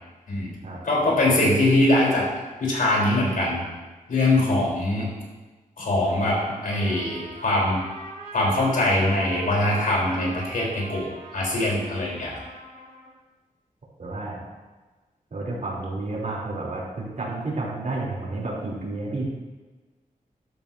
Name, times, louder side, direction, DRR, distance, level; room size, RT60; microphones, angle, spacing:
voice 1, 0.8-2.3 2.6-3.6 4.1-5.1 5.8-7.8 8.3-11.1 11.3-12.4, left 1 dB, 75° left, -4 dB, 4.2 m, -22 dB
Trumpet, 6.0-13.2, right 1 dB, 85° right, 2.7 m, -42 dB
voice 2, 14.0-14.4 15.3-19.3, right 2 dB, 60° right, -5 dB, 3.7 m, -31 dB
13.0 x 12.5 x 2.9 m, 1.3 s
wide cardioid pair, 115°, 14 cm